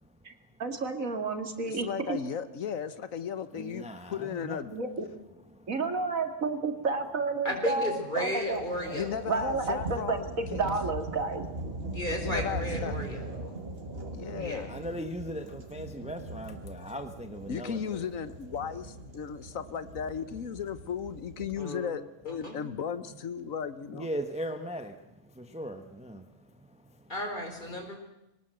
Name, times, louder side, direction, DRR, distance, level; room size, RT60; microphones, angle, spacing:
voice 1, 0.6-2.2 4.7-5.0 5.7-8.6 9.3-11.4, right 4 dB, 85° right, 6 dB, 2.7 m, -31 dB
voice 2, 1.6-4.7 8.9-10.6 12.2-12.9 14.1-14.7 17.5-24.1, left 7 dB, 80° left, 13 dB, 1.4 m, -36 dB
voice 3, 3.5-4.7 14.7-18.4 23.9-27.1, equal, 5° right, 8 dB, 1.1 m, -39 dB
voice 4, 7.4-9.2 11.8-13.6 14.4-14.7 21.6-21.9 22.3-22.6 27.1-28.0, left 1 dB, 35° left, 4 dB, 4.6 m, -34 dB
sound 1, 8.1-21.7, right 2 dB, 45° right, 2.6 m, -40 dB
23.5 x 19.0 x 7.8 m, 0.95 s
omnidirectional pair, 1.4 m